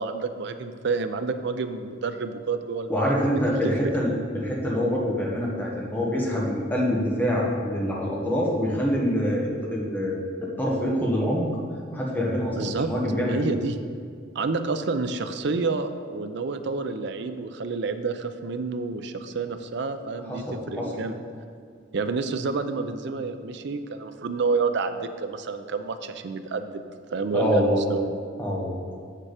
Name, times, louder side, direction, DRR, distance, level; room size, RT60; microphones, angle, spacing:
voice 1, 0.0-3.1 3.6-3.7 12.5-12.9 13.3-13.8 14.3-21.2 21.9-26.8 27.1-28.1, right 4 dB, 65° right, 9 dB, 0.5 m, -29 dB
voice 2, 2.9-10.2 10.6-11.5 11.9-13.6 20.3-20.9 27.3-27.8 28.4-28.8, equal, 10° left, -4 dB, 1.4 m, -25 dB
7.3 x 6.7 x 4.9 m, 2.1 s
head